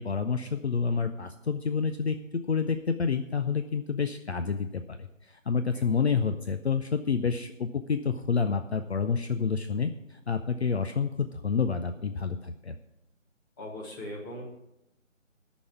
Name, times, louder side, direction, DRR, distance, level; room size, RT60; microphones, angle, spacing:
voice 1, 0.0-12.8, left 5 dB, 55° left, 8 dB, 0.6 m, -29 dB
voice 2, 13.6-14.4, left 1 dB, 15° left, -4 dB, 1.7 m, -39 dB
9.5 x 6.2 x 8.1 m, 0.88 s
figure-of-eight pair, 165°, 39 cm